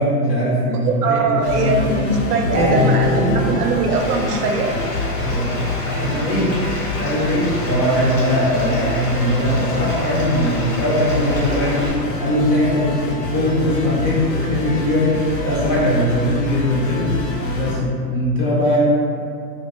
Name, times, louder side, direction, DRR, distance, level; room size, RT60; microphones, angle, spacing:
voice 1, 0.0-1.9 2.4-3.5 5.2-5.6 6.0-6.5 7.0-17.1 17.6-18.8, left 1 dB, 25° left, -7 dB, 0.5 m, -20 dB
voice 2, 0.7-4.7, right 3 dB, 75° right, 2 dB, 0.6 m, -21 dB
sound 1, 1.4-17.7, left 2 dB, 85° left, 0.7 m, -27 dB
sound 2, 2.6-5.9 6.3-6.4, left 1 dB, 30° right, 0.5 m, -26 dB
Bathtub (filling or washing), 3.9-11.9, left 1 dB, 55° left, 1.0 m, -31 dB
2.6 x 2.3 x 3.5 m, 2.4 s
hypercardioid pair, 140°, 48 cm